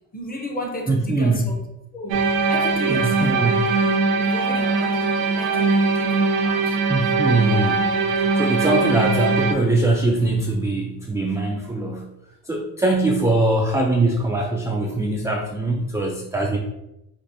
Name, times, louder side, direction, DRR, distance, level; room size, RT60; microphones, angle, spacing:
voice 1, 0.1-1.6 1.9-6.8, left 1 dB, 25° left, 1 dB, 0.8 m, -33 dB
voice 2, 0.9-1.5 2.9-3.6 6.9-12.1 12.5-16.6, right 2 dB, 10° right, 0 dB, 0.3 m, -22 dB
sound 1, 2.1-9.5, right 4 dB, 80° right, 0.6 m, -21 dB
4.7 x 2.5 x 2.6 m, 0.89 s
cardioid pair, 100°, 36 cm